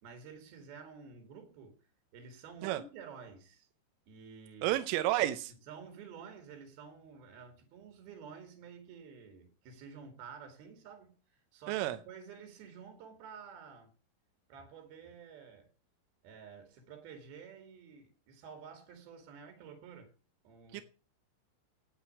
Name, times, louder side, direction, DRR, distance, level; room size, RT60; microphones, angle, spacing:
voice 1, 0.0-1.8 2.1-3.7 4.1-4.8 5.7-13.9 14.5-15.7 16.2-20.1 20.4-20.8, right 6 dB, 55° right, 3.9 m, -51 dB
voice 2, 4.6-5.5 11.7-12.0 20.7-20.8, right 14 dB, 85° right, 3.4 m, -31 dB
10.0 x 8.3 x 9.7 m
omnidirectional pair, 5.7 m